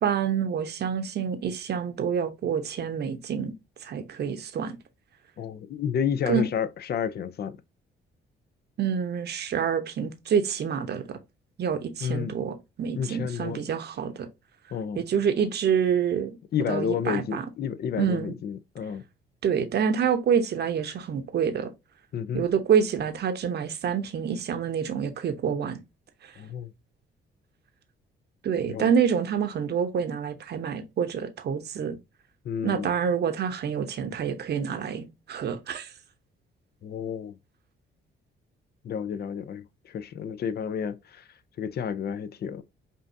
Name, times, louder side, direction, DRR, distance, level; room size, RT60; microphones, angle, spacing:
voice 1, 0.0-3.5 3.8-4.8 6.3-6.5 8.8-11.2 11.6-14.3 14.9-16.4 16.7-17.5 18.0-18.3 19.4-21.7 22.3-25.8 26.2-26.3 28.4-32.0 32.6-35.9, right 7 dB, 55° right, 0.8 m, -27 dB
voice 2, 5.4-7.6 12.0-12.3 12.9-13.6 14.7-15.0 16.5-19.0 22.1-22.5 26.4-26.7 28.7-28.9 32.4-32.9 36.8-37.4 38.8-41.2 41.6-42.6, left 7 dB, 55° left, 0.6 m, -31 dB
5.5 x 2.6 x 2.7 m
cardioid pair, 90°, 20 cm